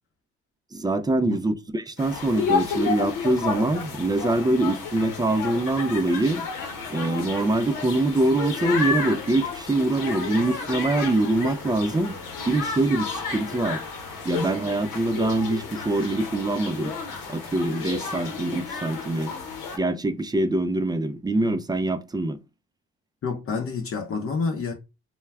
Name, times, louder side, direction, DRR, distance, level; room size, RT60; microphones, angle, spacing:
voice 1, 0.7-6.5 6.9-12.2 12.5-13.8 14.2-16.9 17.3-19.3 19.8-22.4, right 2 dB, 15° right, 0.4 m, -24 dB
sound 1, 2.0-19.8, left 5 dB, 80° left, 0.9 m, -32 dB
voice 2, 23.2-24.7, left 4 dB, 45° left, 0.7 m, -28 dB
2.2 x 2.1 x 3.4 m
supercardioid pair, 55°, 31 cm